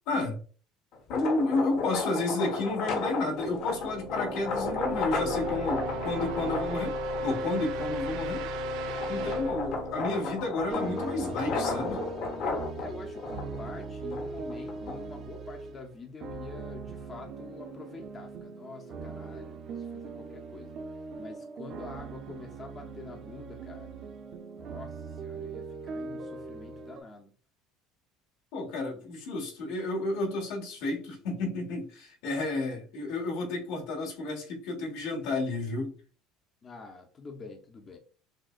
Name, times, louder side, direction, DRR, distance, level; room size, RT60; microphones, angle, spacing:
voice 1, 0.1-0.4 1.1-7.0 7.2-8.5 9.1-12.0 28.5-35.9, left 2 dB, 80° left, -1 dB, 1.5 m, -31 dB
sound 1, 0.9-7.5 8.1-15.2, left 3 dB, 55° left, 1.1 m, -34 dB
sound 2, 3.5-11.3, equal, 85° right, 0.9 m, -35 dB
sound 3, 10.7-27.0, right 3 dB, 45° right, 0.6 m, -40 dB
voice 2, 12.8-20.8 21.2-24.0 24.5-27.3 36.6-38.0, left 3 dB, 25° left, 3 dB, 0.6 m, -46 dB
6.2 x 2.2 x 2.4 m, 0.40 s
cardioid pair, 155°, 0 cm